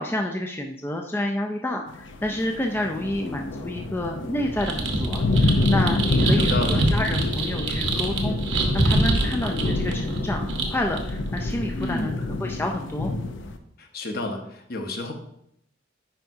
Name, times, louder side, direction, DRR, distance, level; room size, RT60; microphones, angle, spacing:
voice 1, 0.0-12.1 12.4-13.1, left 1 dB, 10° left, 2 dB, 0.4 m, -29 dB
sound 1, 1.9-13.6, left 2 dB, 80° left, 0.6 m, -27 dB
sound 2, 4.6-12.0, right 2 dB, 75° right, 1.0 m, -25 dB
voice 2, 6.4-6.8 11.8-12.2 13.8-15.1, left 2 dB, 55° left, 3 dB, 1.0 m, -30 dB
10.0 x 4.7 x 2.7 m, 0.74 s
head